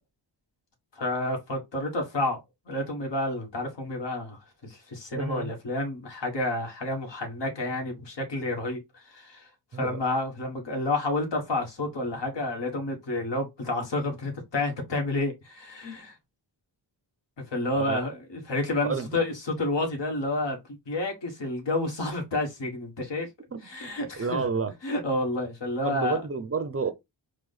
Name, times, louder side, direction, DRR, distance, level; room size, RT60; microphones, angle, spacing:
voice 1, 1.0-2.4 2.7-16.2 17.5-23.3 23.6-24.5 24.8-26.2, left 2 dB, 65° left, 1.7 m, -30 dB
voice 2, 5.2-5.5 9.7-10.0 17.8-18.0 18.8-19.1 23.5-23.6 24.2-24.7 25.8-26.9, right 5 dB, 30° right, 0.5 m, -29 dB
4.8 x 2.3 x 4.0 m
wide cardioid pair, 90°, 45 cm